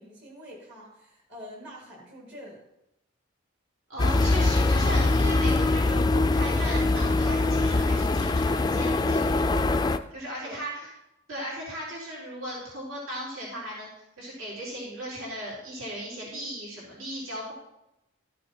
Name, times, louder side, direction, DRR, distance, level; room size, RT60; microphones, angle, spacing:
voice 1, 0.0-2.6 10.4-10.6, equal, 55° right, -3 dB, 2.2 m, -45 dB
voice 2, 3.9-9.6 10.1-10.9 11.3-13.9 14.2-17.5, right 1 dB, 75° right, -6 dB, 4.1 m, -37 dB
sound 1, 4.0-10.0, left 2 dB, 20° left, 0.3 m, -23 dB
13.5 x 6.7 x 4.4 m, 0.87 s
head